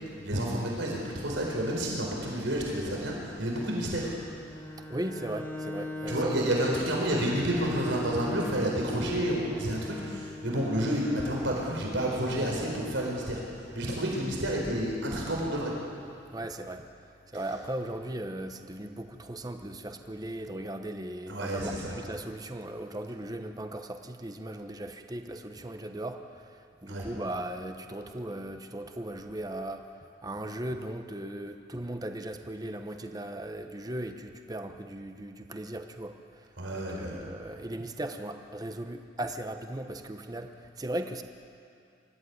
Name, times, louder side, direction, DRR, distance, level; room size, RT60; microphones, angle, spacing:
voice 1, 0.2-4.1 6.1-13.4 13.7-15.7 21.3-22.0 26.9-27.1 36.6-37.2, right 1 dB, 90° right, -2 dB, 4.8 m, -30 dB
Bowed string instrument, 4.4-11.5, left 2 dB, 15° left, 1.8 m, -39 dB
voice 2, 4.8-6.5 6.9-7.2 16.3-41.2, right 1 dB, 20° right, 6 dB, 1.0 m, -38 dB
24.5 x 14.5 x 9.6 m, 2.5 s
head